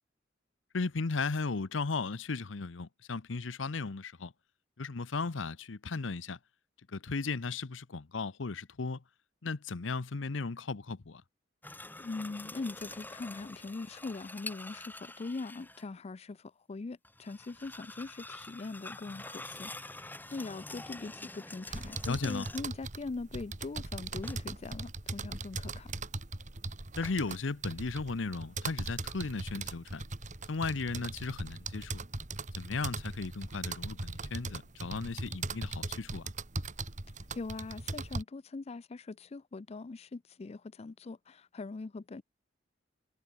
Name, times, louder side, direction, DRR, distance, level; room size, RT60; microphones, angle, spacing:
voice 1, 0.7-4.3 4.8-6.4 6.9-9.0 9.4-11.2 22.1-22.5 27.0-30.0 30.5-32.0 32.6-36.3, left 4 dB, 85° left, 0.8 m, -36 dB
sound 1, 11.6-15.9 17.0-22.8 24.2-24.8 27.0-27.4, left 2 dB, 10° left, 4.3 m, -46 dB
voice 2, 12.0-25.9 37.3-42.2, left 3 dB, 35° left, 0.4 m, -41 dB
sound 2, 21.7-38.2, right 3 dB, 40° right, 2.1 m, -40 dB
head